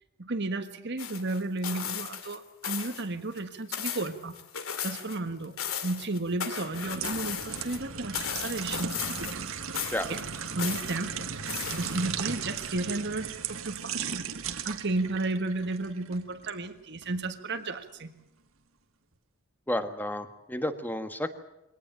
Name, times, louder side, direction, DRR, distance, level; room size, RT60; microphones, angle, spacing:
voice 1, 0.2-4.3 4.8-5.6 5.8-9.4 10.1-10.2 10.5-11.3 11.8-14.3 14.6-18.1, right 2 dB, 50° right, 8 dB, 1.6 m, -33 dB
sound 1, 1.0-2.4 2.6-3.1 3.4-5.2 5.4-7.8 8.1-9.5 9.7-10.9 11.5-12.2 12.6-12.7, left 8 dB, 70° left, 2.5 m, -36 dB
sound 2, 6.6-16.6 17.0-17.2, right 6 dB, 70° right, 1.7 m, -36 dB
voice 2, 19.7-21.4, left 1 dB, 10° left, 9 dB, 1.5 m, -32 dB
23.0 x 18.5 x 9.0 m, 0.91 s
head